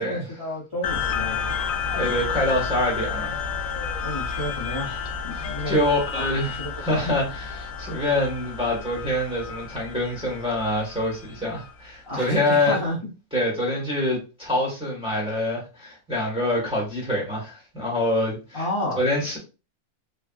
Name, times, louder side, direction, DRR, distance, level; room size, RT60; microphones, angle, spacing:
voice 1, 0.0-1.6 4.0-5.8 6.1-7.2 12.1-13.0 18.5-19.0, left 1 dB, 20° left, 0.9 m, -31 dB
sound 1, 0.8-11.7, left 6 dB, 75° left, 1.0 m, -31 dB
voice 2, 1.9-3.4 5.3-12.8 13.3-18.7 19.0-19.4, left 1 dB, 5° right, 1.2 m, -25 dB
3.4 x 2.3 x 2.3 m
omnidirectional pair, 1.5 m